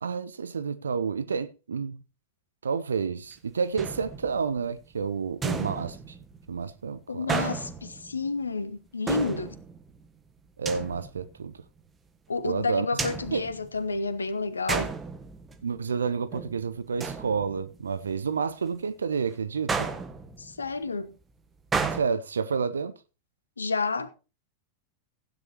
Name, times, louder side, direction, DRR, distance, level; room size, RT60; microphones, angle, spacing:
voice 1, 0.0-2.0 2.6-6.0 6.5-7.3 10.6-11.5 12.4-12.9 13.3-13.4 15.6-19.9 21.9-22.9, right 5 dB, 70° right, 0.7 m, -30 dB
sound 1, 3.8-4.6 5.4-6.5 7.3-8.3 9.1-10.0 10.7-11.4 13.0-14.2 14.7-15.8 16.1-16.6 17.0-17.9 19.7-20.6 21.7-22.0, right 5 dB, 20° right, 1.6 m, -33 dB
voice 2, 7.1-9.5 12.3-15.0 20.4-21.1 23.6-24.1, left 4 dB, 75° left, 1.2 m, -30 dB
15.5 x 9.9 x 2.9 m
figure-of-eight pair, 90°, 0 cm